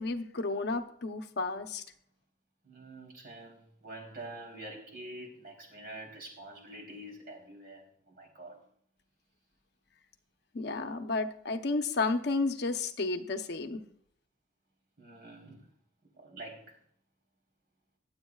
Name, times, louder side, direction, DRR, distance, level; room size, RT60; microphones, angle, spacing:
voice 1, 0.0-1.8 10.5-13.8, left 3 dB, 60° left, 0.8 m, -32 dB
voice 2, 2.6-8.6 15.0-15.6 16.1-16.8, right 1 dB, 55° right, 3.6 m, -46 dB
22.0 x 8.2 x 2.4 m
head